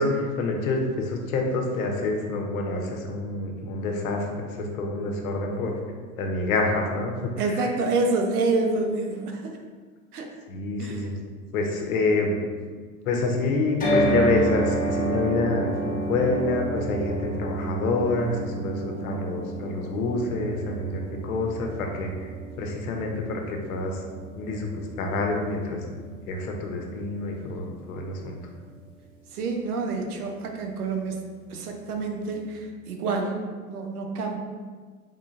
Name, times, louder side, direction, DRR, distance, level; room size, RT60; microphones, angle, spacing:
voice 1, 0.0-5.8 6.2-7.7 10.5-11.1 11.5-12.4 13.0-22.3 22.6-24.0 24.4-25.8 26.3-28.4, left 3 dB, 70° left, 2 dB, 0.9 m, -27 dB
voice 2, 7.4-9.6 10.1-10.3 10.8-11.1 29.3-31.2 31.5-33.4 33.7-34.4, right 3 dB, 90° right, 3 dB, 0.7 m, -27 dB
sound 1, 13.8-27.9, right 2 dB, 20° left, 1.2 m, -31 dB
3.8 x 3.6 x 2.5 m, 1.5 s
hypercardioid pair, 105°, 44 cm